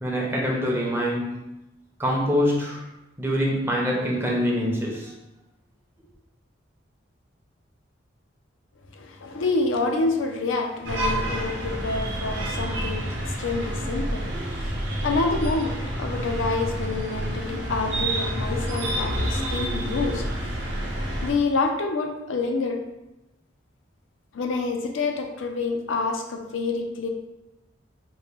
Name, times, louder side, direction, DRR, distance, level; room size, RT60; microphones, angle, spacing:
voice 1, 0.0-1.4 2.0-2.8 3.2-5.1, equal, 10° right, -3 dB, 0.6 m, -24 dB
voice 2, 8.9-14.8 15.0-20.3 21.2-22.8 24.3-27.1, left 3 dB, 80° left, 4 dB, 0.5 m, -27 dB
sound 1, 10.8-21.3, right 1 dB, 60° right, 0.8 m, -28 dB
4.2 x 2.1 x 3.5 m, 0.94 s
head